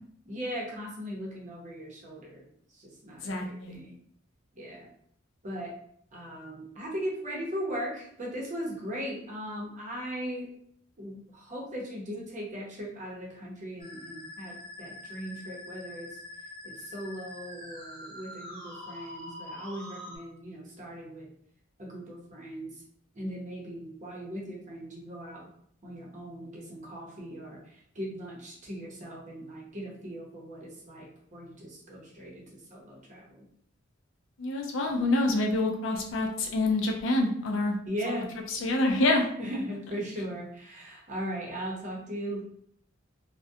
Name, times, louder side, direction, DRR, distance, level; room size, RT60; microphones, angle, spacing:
voice 1, 0.3-2.4 2.7-4.0 4.5-4.9 5.4-5.8 6.1-10.5 11.0-16.2 16.6-21.3 21.8-22.8 23.1-25.5 25.8-33.4 37.9-38.3 39.4-42.4, equal, 40° right, -3 dB, 0.7 m, -38 dB
voice 2, 3.2-3.8 34.4-37.8 38.0-38.1 38.5-39.3, left 2 dB, 65° left, 1 dB, 0.5 m, -27 dB
Musical instrument, 13.8-20.2, left 1 dB, 25° left, 0.9 m, -44 dB
2.3 x 2.1 x 2.6 m, 0.66 s
head